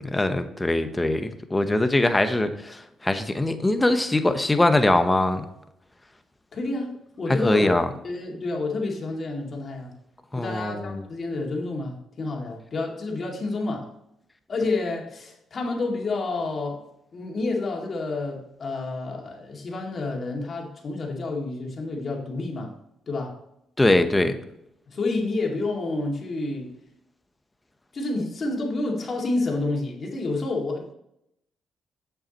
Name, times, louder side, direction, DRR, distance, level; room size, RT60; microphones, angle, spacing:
voice 1, 0.0-5.5 7.4-7.9 10.3-11.0 23.8-24.4, left 2 dB, 15° left, 8 dB, 1.0 m, -22 dB
voice 2, 6.5-7.7 8.0-9.9 10.3-13.9 14.5-16.8 17.1-22.7 23.1-23.4 24.9-26.7 27.9-30.9, left 2 dB, 45° left, 0 dB, 2.4 m, -29 dB
8.0 x 7.2 x 3.0 m, 0.81 s
cardioid pair, 90°, 0 cm